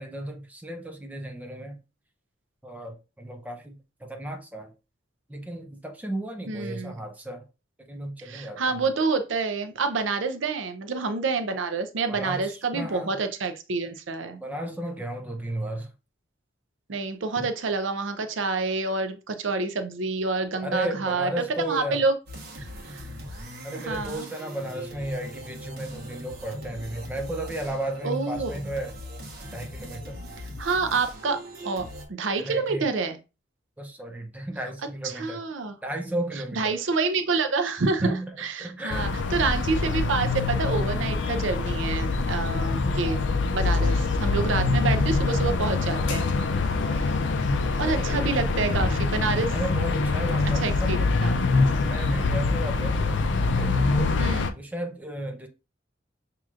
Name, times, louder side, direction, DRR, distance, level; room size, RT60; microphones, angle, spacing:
voice 1, 0.0-1.8 2.6-4.7 5.3-7.4 7.9-8.9 12.1-13.2 14.4-15.9 17.4-17.5 20.6-22.0 23.6-29.0 29.5-30.2 32.4-32.9 33.8-35.4 35.8-36.8 37.8-39.5 43.0-43.2 43.7-44.0 46.5-46.8 47.8-48.4 49.5-51.0 51.5-53.3 53.6-54.2 54.6-55.5, right 1 dB, 10° right, 0.6 m, -34 dB
voice 2, 6.5-6.9 8.2-14.4 16.9-22.1 22.6-23.0 23.7-24.3 28.0-28.5 30.6-31.4 31.6-31.9 32.2-33.2 35.1-35.7 36.6-43.2 43.5-46.3 46.9-47.1 47.8-49.5 50.6-51.4 54.2-54.5, right 4 dB, 85° right, 0.6 m, -28 dB
sound 1, 22.3-32.1, equal, 55° right, 1.2 m, -40 dB
sound 2, 38.9-54.5, left 3 dB, 70° left, 0.5 m, -24 dB
6.1 x 2.9 x 2.4 m
head